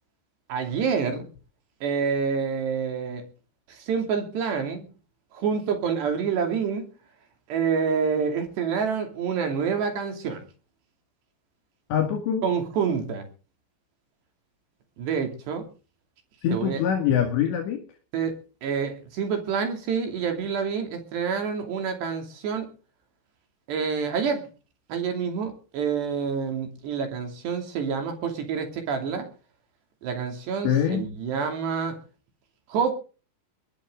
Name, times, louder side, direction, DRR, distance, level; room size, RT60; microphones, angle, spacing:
voice 1, 0.5-1.3 1.8-3.2 3.7-4.9 5.3-6.9 7.5-10.4 12.4-13.3 15.0-15.7 16.5-16.8 18.1-22.7 23.7-24.5 24.9-29.3 30.0-32.0 32.7-32.9, right 6 dB, 65° right, 4.9 m, -27 dB
voice 2, 11.9-12.4 16.4-17.8 30.6-31.0, left 8 dB, 70° left, 4.4 m, -24 dB
22.5 x 12.5 x 3.9 m
omnidirectional pair, 5.3 m